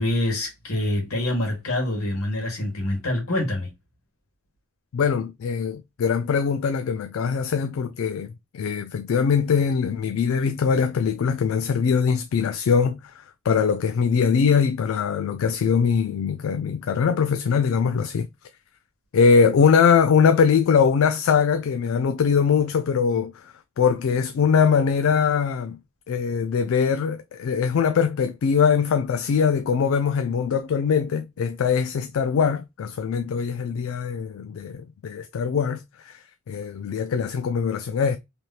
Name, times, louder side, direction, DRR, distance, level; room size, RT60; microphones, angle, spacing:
voice 1, 0.0-3.7, left 1 dB, 85° left, 1.7 m, -25 dB
voice 2, 4.9-18.3 19.1-25.8 26.1-36.2 36.5-38.2, left 6 dB, 70° left, 0.3 m, -22 dB
3.4 x 2.8 x 2.2 m
head